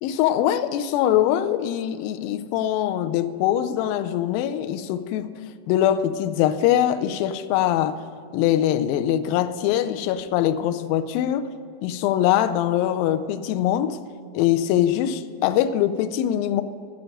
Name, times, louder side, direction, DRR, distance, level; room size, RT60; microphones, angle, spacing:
voice 1, 0.0-5.3 5.7-8.0 8.3-11.5 11.8-14.0 14.3-16.6, left 11 dB, 85° left, 2.1 m, -22 dB
14.0 x 5.3 x 9.0 m
omnidirectional pair, 4.7 m